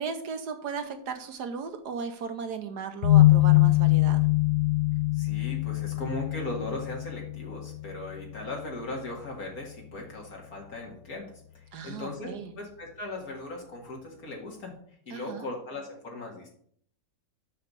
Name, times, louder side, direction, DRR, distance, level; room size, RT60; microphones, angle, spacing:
voice 1, 0.0-4.2 11.7-12.5 15.1-15.5, right 6 dB, 70° right, 7 dB, 1.3 m, -36 dB
sound 1, 3.0-10.1, left 18 dB, 75° left, 1.2 m, -24 dB
voice 2, 5.1-14.8 15.1-16.5, left 2 dB, 55° left, -1 dB, 2.4 m, -38 dB
5.8 x 5.7 x 6.7 m, 0.63 s
omnidirectional pair, 1.9 m